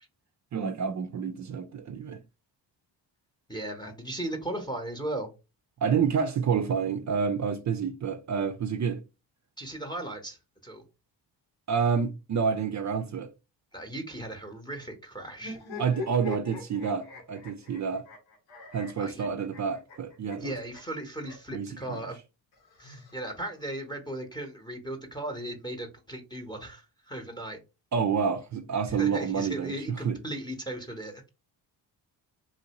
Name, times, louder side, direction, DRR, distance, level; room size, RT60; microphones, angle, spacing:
voice 1, 0.5-2.2 5.8-9.0 11.7-13.3 15.8-18.0 18.7-20.6 21.5-22.0 27.9-30.2, right 6 dB, 40° right, 0.4 m, -28 dB
voice 2, 3.5-5.3 9.6-10.8 13.7-15.6 19.0-19.3 20.4-22.2 22.8-27.6 28.9-31.3, right 1 dB, 10° left, 0.9 m, -37 dB
sound 1, 15.4-21.6 22.5-23.7, left 4 dB, 80° left, 1.5 m, -42 dB
3.2 x 2.6 x 2.9 m
cardioid pair, 70°, 45 cm